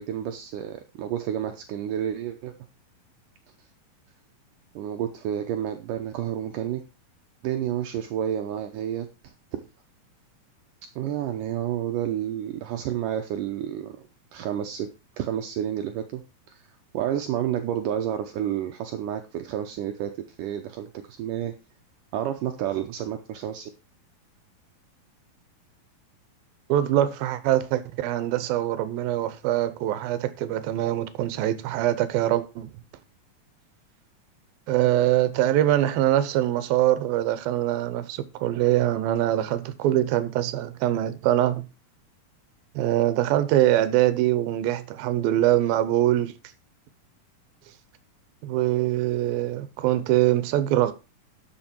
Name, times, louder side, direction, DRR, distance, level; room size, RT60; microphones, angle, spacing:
voice 1, 0.0-2.5 4.8-6.8 7.4-9.6 11.0-14.9 15.2-16.2 16.5-16.6 16.9-20.1 20.4-21.5 22.1-23.7, right 10 dB, 75° right, 2.2 m, -30 dB
voice 2, 26.7-32.7 34.7-41.7 42.8-46.3 48.4-50.9, right 13 dB, 90° right, 2.7 m, -23 dB
12.5 x 6.6 x 4.4 m
omnidirectional pair, 4.1 m